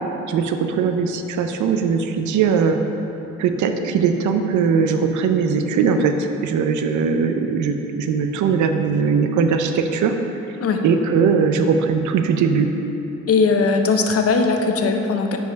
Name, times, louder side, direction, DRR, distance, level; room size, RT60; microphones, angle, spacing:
voice 1, 0.3-2.8 3.4-6.1 6.4-10.1 10.8-12.7, right 6 dB, 70° right, 6 dB, 0.6 m, -20 dB
voice 2, 13.3-15.4, left 4 dB, 50° left, 4 dB, 0.7 m, -19 dB
5.4 x 4.7 x 4.5 m, 2.9 s
supercardioid pair, 60°, 30 cm